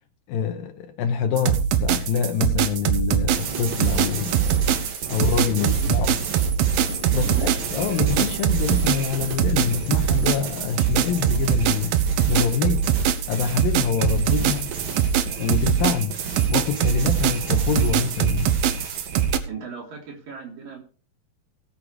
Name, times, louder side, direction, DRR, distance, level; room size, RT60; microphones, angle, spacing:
voice 1, 0.3-4.6 5.1-6.1 7.0-12.9 13.3-14.7 15.4-16.2 16.5-18.6, left 7 dB, 80° left, 5 dB, 2.6 m, -26 dB
sound 1, 1.4-19.4, right 9 dB, 90° right, 2.8 m, -22 dB
sound 2, 3.3-19.4, right 5 dB, 45° right, 1.9 m, -33 dB
voice 2, 5.6-6.0 7.1-7.5 15.3-15.4 19.5-20.8, right 5 dB, 65° right, 0 dB, 5.1 m, -36 dB
18.5 x 6.7 x 4.7 m, 0.37 s
omnidirectional pair, 4.2 m